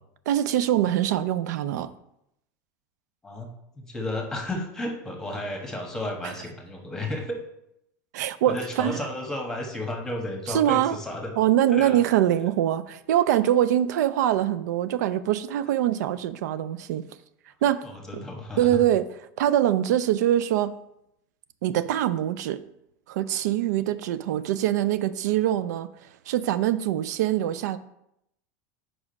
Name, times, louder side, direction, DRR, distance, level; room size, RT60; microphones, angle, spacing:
voice 1, 0.3-1.9 6.2-6.3 8.1-9.0 10.5-11.0 11.4-17.0 17.6-17.8 18.1-18.2 18.6-19.1 19.4-20.7 21.6-22.6 23.1-25.9 26.3-27.8, right 12 dB, 90° right, 14 dB, 0.4 m, -23 dB
voice 2, 3.8-7.4 8.5-11.3 11.7-12.0 17.8-18.7, left 1 dB, 5° left, 2 dB, 1.2 m, -33 dB
5.0 x 4.9 x 5.3 m, 0.80 s
supercardioid pair, 140°, 9 cm